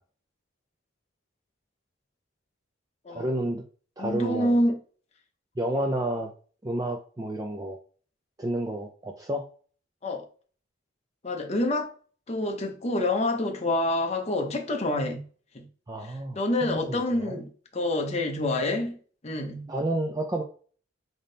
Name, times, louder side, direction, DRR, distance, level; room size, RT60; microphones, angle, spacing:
voice 1, 3.1-3.6 4.0-4.6 5.6-6.3 6.6-7.8 8.4-9.4 15.9-17.4 19.7-20.4, right 1 dB, 15° right, 0.3 m, -30 dB
voice 2, 4.0-4.8 10.0-10.2 11.2-11.9 12.3-15.2 15.5-15.7 16.0-19.0 19.2-19.7, left 1 dB, 30° left, 0.6 m, -27 dB
3.5 x 2.8 x 3.8 m
head